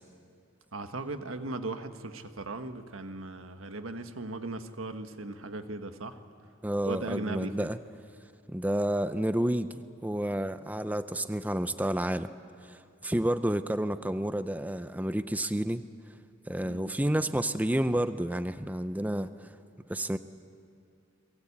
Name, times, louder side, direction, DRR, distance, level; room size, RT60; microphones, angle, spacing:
voice 1, 0.7-6.2 6.8-7.7 16.6-17.0, right 2 dB, 80° right, 8 dB, 1.5 m, -38 dB
voice 2, 6.6-7.8 8.5-12.3 12.7-15.8 16.5-19.5 19.9-20.2, right 1 dB, 10° right, 12 dB, 0.6 m, -30 dB
29.5 x 21.5 x 8.6 m, 2.4 s
head